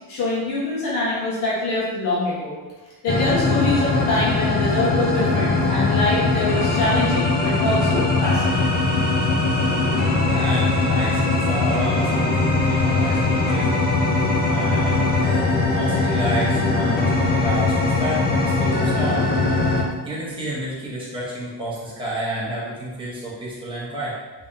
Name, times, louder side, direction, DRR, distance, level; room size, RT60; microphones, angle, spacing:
voice 1, 0.1-2.6 3.0-8.8, left 2 dB, 60° left, -8 dB, 1.4 m, -24 dB
sound 1, 3.1-19.8, left 3 dB, 25° left, 0.4 m, -20 dB
voice 2, 10.2-13.8 14.5-19.3 20.0-24.2, right 1 dB, 10° right, -7 dB, 1.0 m, -30 dB
3.8 x 3.3 x 2.7 m, 1.2 s
cardioid pair, 160°, 43 cm